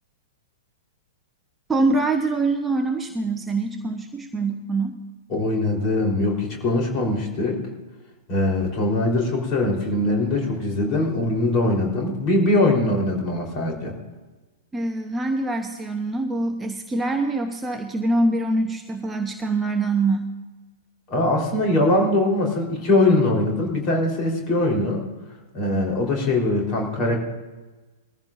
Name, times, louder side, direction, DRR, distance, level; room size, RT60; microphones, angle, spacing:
voice 1, 1.7-5.0 14.7-20.3, right 2 dB, 10° right, 4 dB, 0.9 m, -24 dB
voice 2, 5.3-7.6 8.3-13.9 21.1-25.0 25.5-27.2, left 2 dB, 35° left, 0 dB, 3.9 m, -22 dB
21.5 x 14.5 x 2.6 m, 1.2 s
figure-of-eight pair, 105°, 0 cm